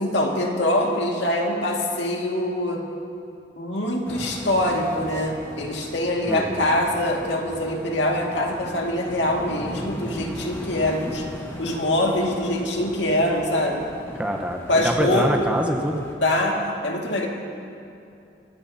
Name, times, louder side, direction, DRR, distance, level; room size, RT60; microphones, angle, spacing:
voice 1, 0.0-2.8 3.5-11.3 11.6-13.8 14.7-15.3 16.2-17.3, left 1 dB, 80° left, 0 dB, 2.1 m, -24 dB
sound 1, 4.0-16.2, equal, 15° left, 1.6 m, -38 dB
voice 2, 6.3-6.7 14.1-16.0, right 1 dB, 5° right, 2 dB, 1.0 m, -25 dB
27.5 x 15.5 x 2.8 m, 2.6 s
head